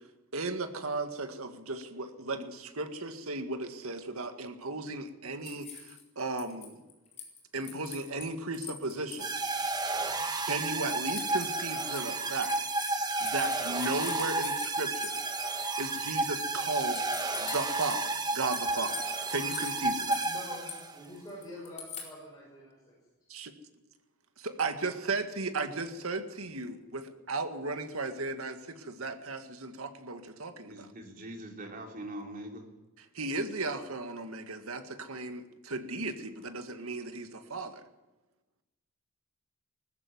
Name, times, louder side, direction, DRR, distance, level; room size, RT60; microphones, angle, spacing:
voice 1, 0.3-6.8 7.5-9.3 10.4-15.2 15.8-17.0 17.4-20.2 23.3-23.5 24.4-30.9 33.0-37.8, right 3 dB, 80° right, 7 dB, 1.9 m, -35 dB
sound 1, 5.4-6.0 6.4-8.3 8.5-9.5 10.1-10.3 10.9-16.1 16.6-16.7 16.9-18.2 18.5-22.1, left 7 dB, 30° left, 4.7 m, -43 dB
sound 2, 9.2-21.0, right 3 dB, 20° right, 1.2 m, -32 dB
voice 2, 20.2-22.8, left 1 dB, 15° left, -5 dB, 6.8 m, -46 dB
voice 3, 30.6-32.6, right 1 dB, 40° right, 2 dB, 3.6 m, -42 dB
20.0 x 14.5 x 9.5 m, 1.1 s
head